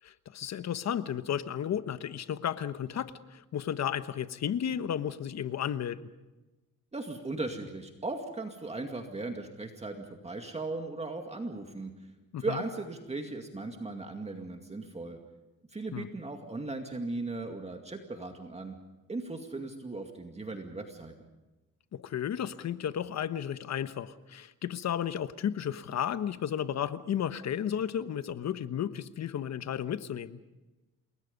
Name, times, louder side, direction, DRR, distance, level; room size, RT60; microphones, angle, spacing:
voice 1, 0.0-6.0 12.3-12.6 15.9-16.1 21.9-30.4, left 9 dB, 50° left, 12 dB, 1.2 m, -33 dB
voice 2, 6.9-11.9 12.4-15.2 15.7-18.8 19.1-21.1, right 2 dB, 20° right, 4 dB, 2.2 m, -37 dB
28.5 x 21.5 x 5.4 m, 1.1 s
cardioid pair, 115°, 34 cm